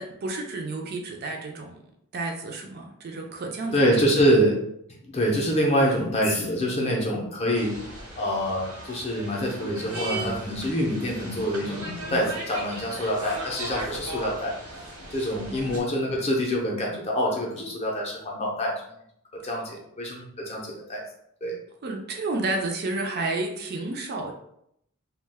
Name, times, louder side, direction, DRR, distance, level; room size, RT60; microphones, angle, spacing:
voice 1, 0.0-1.8 2.1-4.2 15.5-15.8 19.4-19.6 21.8-24.3, right 2 dB, 45° right, 2 dB, 0.4 m, -31 dB
voice 2, 3.7-4.6 5.1-7.8 8.2-14.5 15.1-18.7 19.4-21.0 21.4-21.6, equal, 30° left, -2 dB, 0.5 m, -25 dB
sound 1, 7.5-15.8, right 2 dB, 85° right, 0.9 m, -37 dB
Bowed string instrument, 9.6-12.6 12.9-13.1 13.6-13.7 13.9-15.8 16.1-16.9 17.6-18.2, left 2 dB, 75° left, 0.6 m, -43 dB
2.3 x 2.2 x 3.3 m, 0.74 s
head